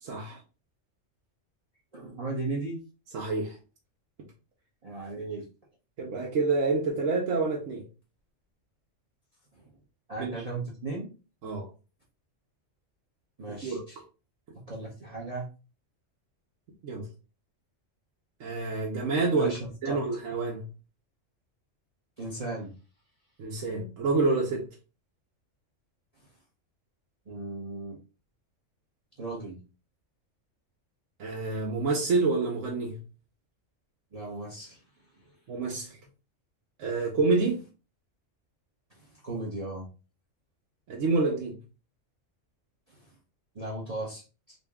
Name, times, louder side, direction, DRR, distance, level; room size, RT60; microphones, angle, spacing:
voice 1, 0.0-0.4 3.1-3.5 6.0-7.8 10.2-10.3 11.4-11.7 13.6-13.8 16.8-17.0 18.4-19.5 19.8-20.6 23.4-24.6 31.2-32.9 35.5-35.9 36.8-37.6 40.9-41.6, right 3 dB, 80° right, 1.2 m, -27 dB
voice 2, 1.9-2.8 4.8-5.4 10.1-11.1 13.4-14.0 14.7-15.5 19.3-20.0 22.2-22.7 27.3-28.0 29.2-29.6 34.1-34.8 35.2-35.3 38.9-39.9 42.9-43.1 43.5-44.6, right 2 dB, 35° right, 0.8 m, -36 dB
3.9 x 2.2 x 3.5 m
omnidirectional pair, 1.3 m